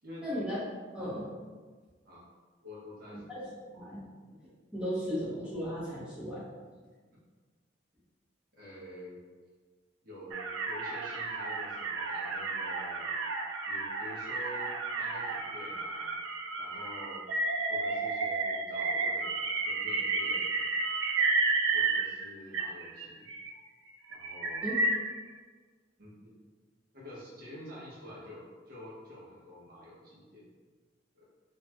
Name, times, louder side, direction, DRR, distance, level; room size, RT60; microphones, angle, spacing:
voice 1, 0.2-0.6 0.9-1.3 3.1-3.5 3.7-4.4 4.7-6.4 24.6-24.7, equal, 5° right, -10 dB, 0.8 m, -36 dB
voice 2, 2.6-3.4 8.6-9.2 10.0-13.1 13.7-16.1 16.6-17.2 17.7-20.6 21.6-23.3 24.1-24.7 26.0-26.3 26.9-30.4 31.1-31.2, left 1 dB, 50° right, -7 dB, 1.0 m, -48 dB
sound 1, 10.3-22.3 22.5-23.5 24.1-25.2, right 3 dB, 85° right, 0.3 m, -32 dB
3.0 x 2.7 x 2.2 m, 1.4 s
head